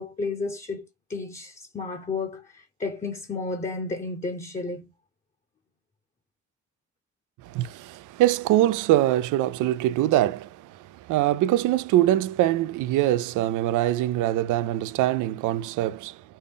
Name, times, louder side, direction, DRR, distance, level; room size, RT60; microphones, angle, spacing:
voice 1, 0.0-4.9, left 3 dB, 25° left, 0.8 m, -32 dB
voice 2, 7.4-16.2, right 14 dB, 85° right, 0.5 m, -23 dB
5.3 x 2.1 x 3.6 m
cardioid pair, 90°, 30 cm